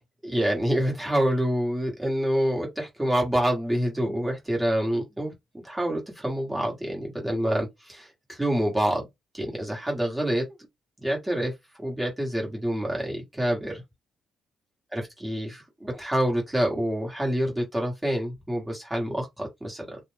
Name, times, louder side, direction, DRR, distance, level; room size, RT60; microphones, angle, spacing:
voice 1, 0.2-9.1 9.3-10.5 11.0-13.8 14.9-20.0, equal, 10° right, 1.3 m, -27 dB
2.5 x 2.1 x 3.2 m
cardioid pair, 90°, 0 cm